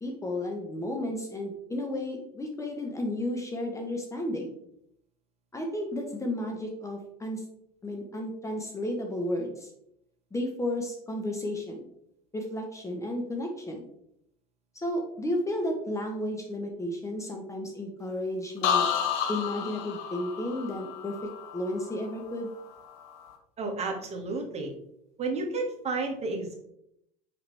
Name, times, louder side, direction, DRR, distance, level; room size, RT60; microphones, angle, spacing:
voice 1, 0.0-4.6 5.5-7.4 7.8-9.7 10.3-11.9 12.3-13.9 14.7-18.9 19.3-21.1 21.5-22.5, left 1 dB, 15° left, 2 dB, 1.1 m, -33 dB
sound 1, 18.6-22.4 22.8-23.3, left 8 dB, 60° left, 1.1 m, -31 dB
voice 2, 23.6-24.7 25.2-26.6, right 3 dB, 35° right, 1 dB, 1.7 m, -31 dB
5.6 x 5.1 x 3.4 m, 0.76 s
hypercardioid pair, 90°, 20 cm